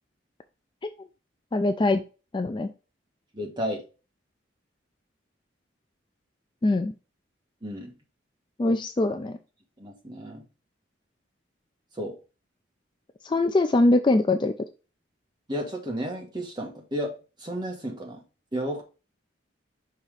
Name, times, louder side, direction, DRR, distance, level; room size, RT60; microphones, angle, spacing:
voice 1, 1.5-2.0 2.3-2.7 6.6-6.9 8.6-9.4 13.2-14.5, left 2 dB, 25° left, 8 dB, 0.3 m, -22 dB
voice 2, 3.3-3.8 7.6-7.9 9.8-10.4 12.0-12.1 15.5-17.1 17.4-18.2 18.5-18.8, equal, 25° right, 0 dB, 1.6 m, -32 dB
5.6 x 3.5 x 5.0 m, 0.32 s
head